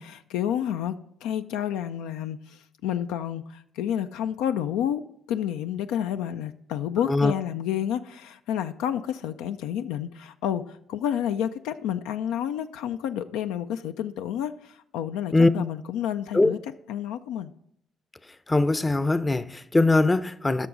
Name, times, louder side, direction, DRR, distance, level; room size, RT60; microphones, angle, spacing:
voice 1, 0.0-5.0 5.3-17.5, left 10 dB, 85° left, 0.3 m, -30 dB
voice 2, 18.5-20.7, left 2 dB, 20° left, 0.5 m, -21 dB
11.5 x 6.1 x 3.8 m
supercardioid pair, 60°, 0 cm